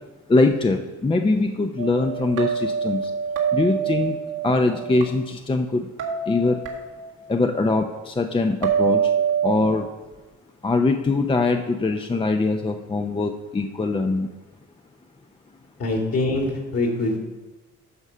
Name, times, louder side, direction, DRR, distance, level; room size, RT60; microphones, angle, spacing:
voice 1, 0.3-3.1 3.5-4.2 4.4-5.9 6.3-6.6 7.3-9.1 9.4-9.9 10.6-14.3, left 3 dB, 15° left, 5 dB, 0.6 m, -22 dB
sound 1, 1.8-5.0 6.0-7.3 8.6-9.5, right 7 dB, 85° right, 1.8 m, -25 dB
voice 2, 15.8-17.2, left 2 dB, 55° left, 1 dB, 2.4 m, -24 dB
11.0 x 4.1 x 6.8 m, 1.2 s
cardioid pair, 90°, 30 cm